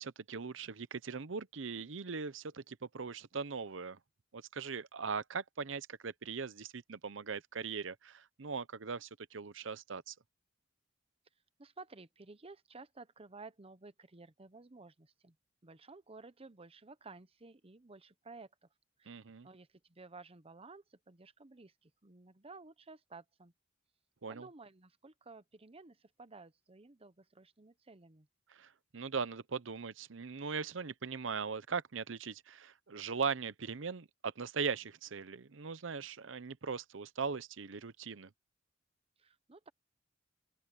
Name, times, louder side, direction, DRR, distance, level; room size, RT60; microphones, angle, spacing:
voice 1, 0.0-4.0 4.3-10.1 19.1-19.5 24.2-24.5 28.5-38.3, right 5 dB, 75° right, 0.8 m, -40 dB
voice 2, 11.6-15.4 15.6-18.7 19.0-23.5 24.3-28.3 39.2-39.7, right 3 dB, 30° right, 0.9 m, -54 dB
open air
head